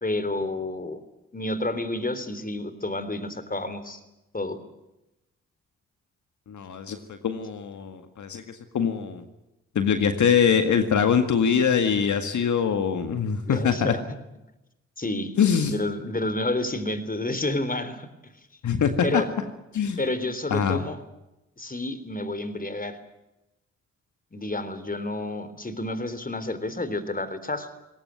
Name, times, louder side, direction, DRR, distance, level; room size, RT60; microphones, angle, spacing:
voice 1, 0.0-1.0 1.3-4.0 4.3-4.6 13.5-14.0 15.0-15.3 15.6-18.3 19.0-19.3 20.0-21.0 21.6-23.0 24.3-27.7, left 2 dB, 30° left, 13 dB, 3.8 m, -30 dB
voice 2, 6.5-9.2 9.8-13.9 15.4-15.8 18.6-19.2 19.7-20.0 20.5-20.8, left 7 dB, 70° left, 8 dB, 1.9 m, -23 dB
21.0 x 19.0 x 9.6 m, 0.94 s
supercardioid pair, 40°, 31 cm